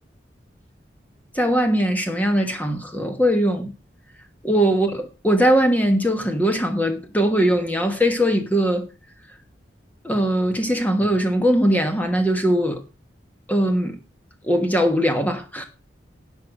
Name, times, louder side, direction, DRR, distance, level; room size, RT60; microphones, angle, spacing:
voice 1, 1.3-3.7 4.4-8.9 10.0-12.8 13.5-14.0 14.4-15.6, equal, 10° left, 1.3 m, -20 dB
11.5 x 6.4 x 6.4 m
head